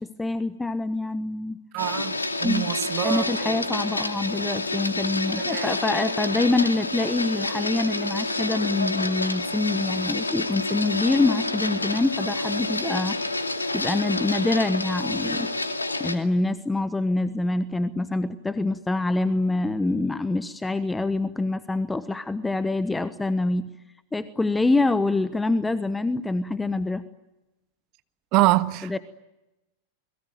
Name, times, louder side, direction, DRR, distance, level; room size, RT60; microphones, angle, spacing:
voice 1, 0.0-1.6 2.4-2.7 3.0-13.2 13.7-15.5 16.0-23.7 24.1-27.1 28.8-29.0, left 2 dB, 10° left, 1.1 m, -25 dB
voice 2, 1.7-3.6 5.5-5.7 28.3-29.0, right 19 dB, 40° right, 1.4 m, -25 dB
Printer, 1.8-16.1, left 2 dB, 80° left, 2.4 m, -28 dB
29.0 x 22.0 x 9.2 m
figure-of-eight pair, 90°, 0 cm